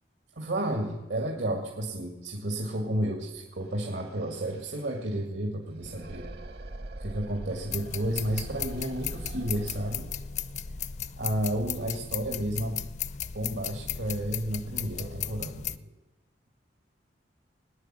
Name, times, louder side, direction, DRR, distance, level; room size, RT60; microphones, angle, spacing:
voice 1, 0.4-6.3 7.0-10.1 11.2-12.9 13.3-15.9, right 1 dB, 85° right, 0 dB, 2.0 m, -32 dB
sound 1, 3.4-3.5 3.7-12.5, right 1 dB, 60° right, 1.0 m, -44 dB
sound 2, 7.7-15.8, left 8 dB, 40° left, 0.4 m, -36 dB
19.0 x 9.9 x 7.6 m, 1.1 s
head